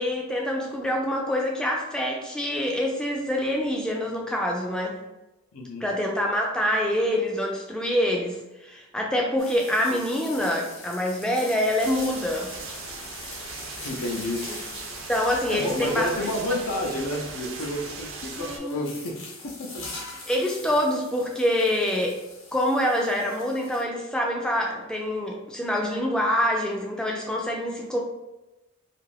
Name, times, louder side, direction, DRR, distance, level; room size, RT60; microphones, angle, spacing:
voice 1, 0.0-5.0 5.8-12.5 15.1-16.3 18.4-18.9 20.3-22.2 22.5-28.0, left 1 dB, 5° left, 0 dB, 0.3 m, -26 dB
voice 2, 5.5-5.8 13.8-14.4 15.5-19.1 19.4-19.8, left 1 dB, 85° left, 1 dB, 0.5 m, -30 dB
sound 1, 9.4-23.8, left 3 dB, 65° left, 0.9 m, -43 dB
sound 2, 11.8-18.6, right 4 dB, 65° right, 0.5 m, -38 dB
2.5 x 2.5 x 3.2 m, 1.0 s
head